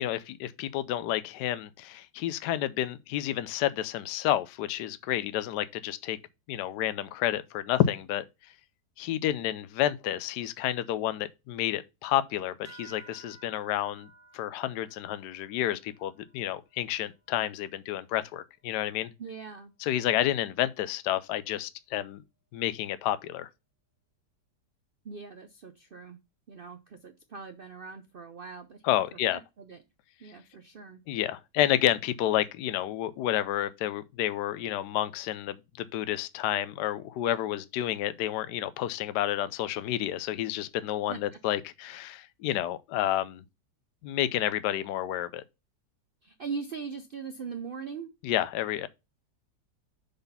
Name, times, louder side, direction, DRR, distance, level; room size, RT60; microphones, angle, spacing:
voice 1, 0.0-6.2 6.5-8.2 9.0-14.1 14.3-19.1 19.8-22.2 22.5-23.5 28.8-29.4 30.2-30.3 31.1-43.4 44.0-45.4 48.2-48.9, left 12 dB, 80° left, 1.1 m, -30 dB
sound 1, 12.6-17.6, right 3 dB, 15° right, 0.5 m, -55 dB
voice 2, 19.2-19.7 25.0-26.2 26.5-29.0 29.3-29.8 30.2-31.0 41.1-41.2 46.2-48.1, right 5 dB, 85° right, 0.4 m, -41 dB
6.9 x 4.0 x 5.5 m
omnidirectional pair, 1.8 m